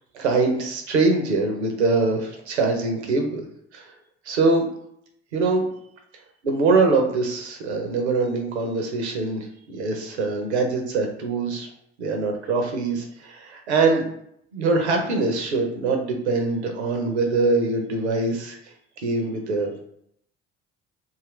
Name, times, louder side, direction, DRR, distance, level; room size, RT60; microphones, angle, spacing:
voice 1, 0.1-3.4 3.7-3.9 4.2-4.6 5.3-5.6 6.4-11.7 12.0-14.0 14.5-19.8, right 3 dB, 90° right, 3 dB, 0.6 m, -23 dB
2.7 x 2.4 x 3.1 m, 0.71 s
hypercardioid pair, 55°, 33 cm